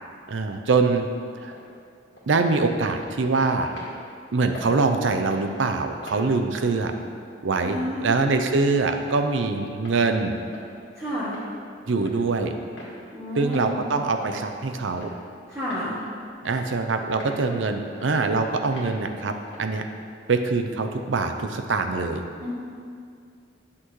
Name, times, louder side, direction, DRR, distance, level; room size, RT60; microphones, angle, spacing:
voice 1, 0.3-1.1 1.4-1.5 2.3-3.7 4.3-6.9 7.4-7.8 8.0-10.3 11.9-12.5 13.4-15.1 16.4-19.8 20.3-22.3, right 3 dB, 80° right, 6 dB, 0.6 m, -24 dB
sound 1, 1.5-1.7 2.2-2.4 3.0-3.2 3.7-3.9 4.5-4.7 5.2-5.5 6.0-6.2 6.8-7.0 7.5-7.6 8.2-8.5 9.1-9.2 9.8-10.0 10.5-10.8 11.2-11.5 12.0-12.2 12.8-13.0 13.5-13.7 14.2-14.4 15.0-15.2 15.7-15.9 16.4-16.6 17.2-17.5 18.0-18.1 18.7-18.9 19.5-19.7, left 1 dB, 70° left, 1.7 m, -43 dB
voice 2, 7.6-8.1 11.0-11.4 13.1-13.8 15.5-16.0 22.4-22.5, equal, 15° right, -10 dB, 1.2 m, -30 dB
10.5 x 6.0 x 3.1 m, 2.3 s
head